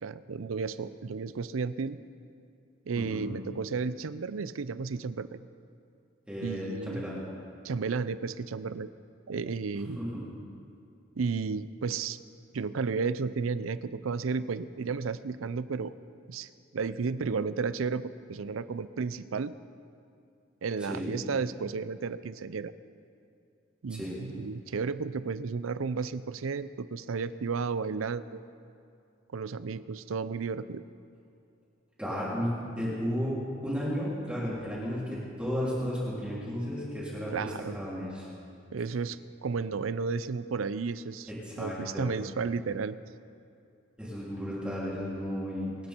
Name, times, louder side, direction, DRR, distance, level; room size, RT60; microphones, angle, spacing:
voice 1, 0.0-2.0 2.9-5.4 6.4-7.0 7.6-8.9 9.3-10.0 11.2-12.2 12.5-15.9 16.3-19.5 20.6-22.7 23.8-28.4 29.3-30.8 37.3-37.8 38.7-41.3 41.6-43.0, right 5 dB, 90° right, 15 dB, 0.5 m, -33 dB
voice 2, 2.9-3.3 6.3-7.2 10.0-10.2 20.8-21.1 23.9-24.1 32.0-33.4 33.6-38.3 41.3-42.1 44.0-45.7, equal, 5° right, -8 dB, 3.4 m, -34 dB
24.5 x 9.6 x 4.5 m, 2.6 s
head